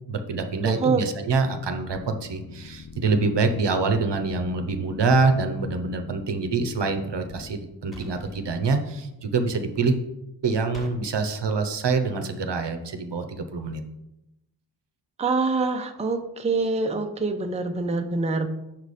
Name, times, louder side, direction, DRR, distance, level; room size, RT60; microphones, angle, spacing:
voice 1, 0.1-10.0 10.4-13.8, right 4 dB, 65° right, 7 dB, 0.8 m, -25 dB
voice 2, 0.6-1.0 15.2-18.5, right 3 dB, 15° right, 6 dB, 0.5 m, -25 dB
Boat Water vehicle, 1.5-7.6, left 6 dB, 40° left, 0.5 m, -44 dB
sound 1, 7.9-8.5 10.7-11.0, right 1 dB, ahead, 1.4 m, -42 dB
6.0 x 4.8 x 4.1 m, 0.90 s
wide cardioid pair, 70°, 45 cm